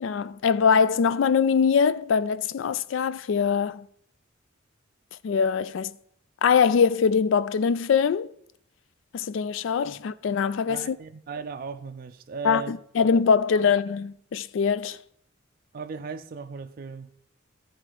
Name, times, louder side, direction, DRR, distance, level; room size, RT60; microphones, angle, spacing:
voice 1, 0.0-3.9 5.2-5.9 6.4-8.3 9.1-11.0 12.4-15.0, left 6 dB, 65° left, 0.3 m, -23 dB
voice 2, 10.7-12.8 13.6-13.7 15.7-17.1, right 5 dB, 45° right, 0.4 m, -37 dB
13.0 x 4.9 x 4.6 m
head